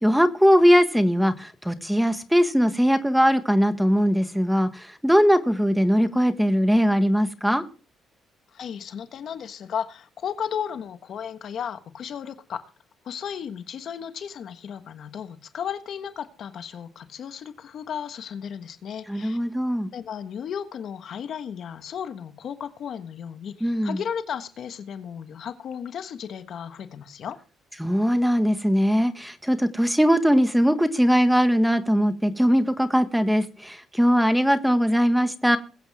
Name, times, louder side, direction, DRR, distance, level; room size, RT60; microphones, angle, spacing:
voice 1, 0.0-7.6 19.1-19.9 23.6-24.0 27.8-35.6, equal, ahead, 1.5 m, -20 dB
voice 2, 8.5-12.6 13.0-19.4 19.9-27.4, left 8 dB, 60° left, 1.3 m, -34 dB
21.5 x 8.3 x 3.6 m
cardioid pair, 95°, 0 cm